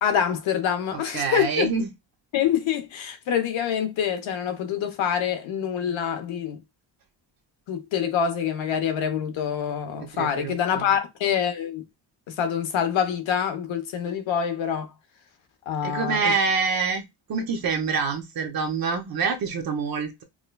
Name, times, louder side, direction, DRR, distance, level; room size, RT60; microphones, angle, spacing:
voice 1, 0.0-1.7 2.3-6.6 7.7-11.9 12.3-14.9 15.7-16.3, left 8 dB, 70° left, 1.0 m, -26 dB
voice 2, 0.9-1.9 10.1-11.0 15.8-17.0 17.3-20.2, right 5 dB, 45° right, 0.9 m, -26 dB
4.8 x 2.3 x 2.2 m
cardioid pair, 170°, 48 cm